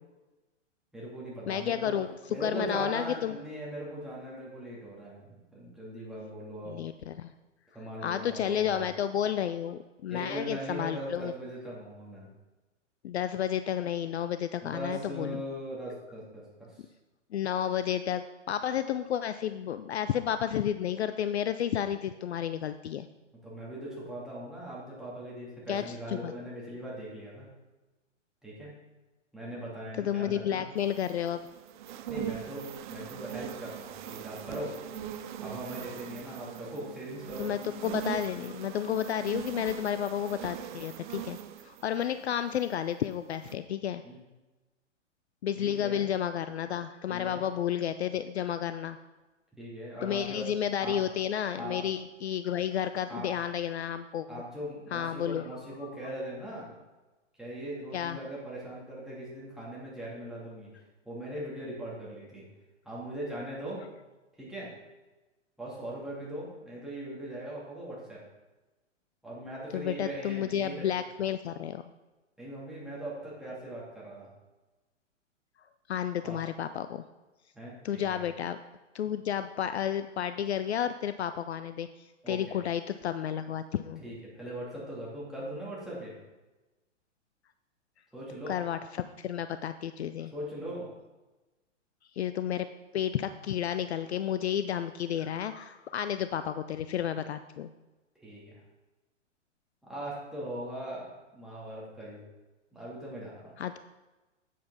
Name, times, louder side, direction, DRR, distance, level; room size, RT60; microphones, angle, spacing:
voice 1, 0.9-2.0 2.3-6.8 7.7-8.9 10.1-12.3 14.6-16.9 23.4-27.5 28.4-28.7 29.3-30.6 32.1-34.7 35.4-37.5 44.0-44.2 45.6-46.0 47.1-47.4 49.6-50.4 50.8-51.0 51.6-51.8 53.1-53.3 54.3-56.7 57.4-60.7 61.0-62.4 62.8-63.8 64.4-64.7 65.6-68.2 69.2-70.9 72.4-74.3 76.2-76.4 77.5-78.2 82.2-82.6 84.0-86.1 88.1-88.6 90.3-90.9 98.2-98.6 99.8-102.2 102.7-103.5, right 1 dB, ahead, -7 dB, 2.8 m, -40 dB
voice 2, 1.5-2.1 2.4-3.3 6.7-7.3 8.0-11.3 13.0-15.4 17.3-23.1 25.7-26.3 30.0-31.4 37.4-41.4 41.6-44.0 45.4-49.0 50.0-54.4 54.9-55.4 57.9-58.2 69.7-71.8 75.9-77.0 77.8-78.6 78.9-84.0 88.5-90.3 92.2-92.7 92.9-97.7 103.6-103.8, left 9 dB, 60° left, 11 dB, 0.5 m, -31 dB
sound 1, 30.8-42.9 43.3-43.5, right 10 dB, 40° right, 0.5 m, -41 dB
8.9 x 7.6 x 4.0 m, 1.1 s
figure-of-eight pair, 115°, 38 cm